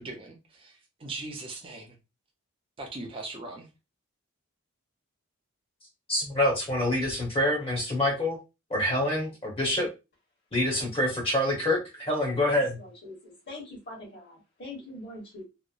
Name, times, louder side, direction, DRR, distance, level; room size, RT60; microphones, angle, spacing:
voice 1, 0.0-1.9 2.8-3.7, right 2 dB, 25° right, 0.5 m, -40 dB
voice 2, 6.1-8.4 8.7-9.9 10.5-12.8, left 1 dB, 25° left, 0.8 m, -26 dB
voice 3, 12.4-15.4, left 2 dB, 50° left, 1.2 m, -43 dB
2.9 x 2.0 x 2.4 m
head